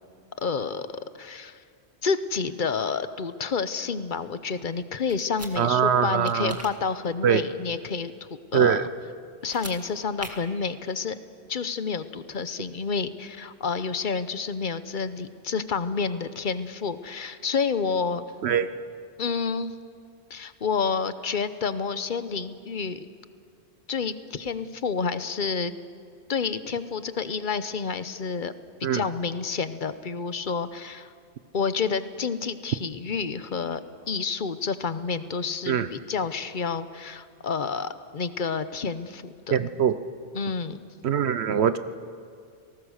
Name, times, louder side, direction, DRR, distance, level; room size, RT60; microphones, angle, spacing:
voice 1, 0.4-0.9 1.2-1.6 2.0-8.9 9.4-11.2 11.5-18.3 19.2-19.7 20.3-23.1 23.9-25.7 26.3-28.5 28.8-31.1 31.5-33.8 34.1-39.6 40.3-40.8, left 5 dB, 50° left, 12 dB, 1.0 m, -29 dB
sound 1, 5.1-5.5 6.3-6.7 9.4-9.8 10.2-10.3, right 1 dB, 15° right, 1.9 m, -39 dB
voice 2, 5.6-6.5 7.2-7.4 8.5-8.9 18.4-18.7 28.8-29.1 35.7-35.9 39.5-40.0 41.0-41.8, right 8 dB, 80° right, 12 dB, 1.0 m, -22 dB
29.5 x 19.0 x 6.5 m, 2.1 s
omnidirectional pair, 1.1 m